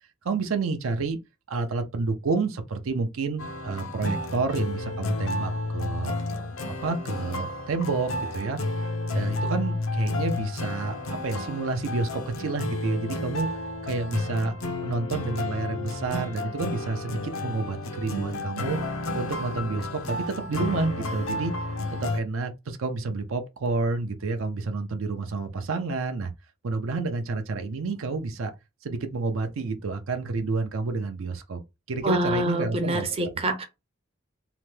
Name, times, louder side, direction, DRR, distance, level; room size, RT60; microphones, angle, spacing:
voice 1, 0.2-1.2 1.5-8.6 9.1-13.5 13.8-14.5 14.8-18.8 19.1-21.5 22.0-26.3 26.6-28.5 28.8-31.6 31.9-33.3, right 3 dB, 80° right, 0.5 m, -29 dB
sound 1, 3.4-22.2, left 2 dB, 85° left, 0.6 m, -31 dB
voice 2, 32.0-33.6, right 1 dB, 30° right, 0.5 m, -26 dB
2.9 x 2.2 x 3.1 m
head